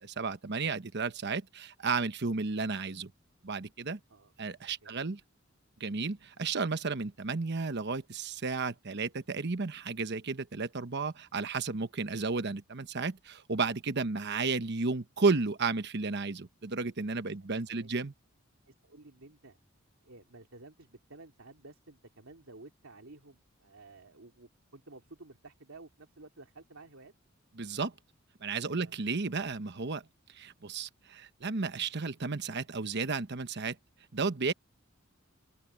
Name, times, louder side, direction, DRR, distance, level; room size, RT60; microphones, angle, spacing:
voice 1, 0.0-3.1 3.4-4.0 4.4-5.2 5.8-18.1 27.6-27.9 28.4-30.0 30.3-33.8 34.1-34.5, right 4 dB, 55° right, 1.1 m, -33 dB
voice 2, 17.4-18.0 18.7-19.6 20.0-27.1 28.7-28.9, right 2 dB, 85° right, 2.6 m, -53 dB
open air
head